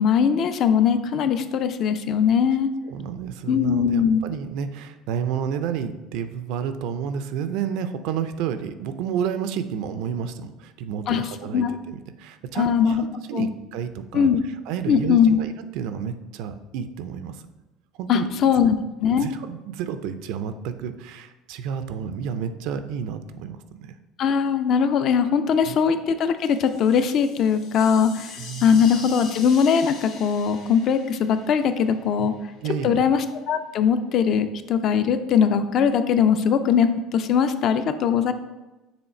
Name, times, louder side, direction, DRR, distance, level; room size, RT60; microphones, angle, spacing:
voice 1, 0.0-2.7 3.5-4.2 11.1-11.2 11.5-11.7 12.5-13.0 13.3-13.5 14.1-14.4 14.9-15.4 18.1-19.3 24.2-32.3 32.8-38.3, left 7 dB, 40° left, 10 dB, 0.3 m, -20 dB
voice 2, 2.9-14.3 14.7-17.4 18.0-18.3 19.2-23.9 25.7-25.8 28.4-28.8 32.2-32.3 32.6-33.1, right 8 dB, 65° right, 10 dB, 0.4 m, -30 dB
sound 1, 26.4-32.3, left 4 dB, 60° left, 1.7 m, -42 dB
7.0 x 3.2 x 4.2 m, 1.1 s
cardioid pair, 165°, 0 cm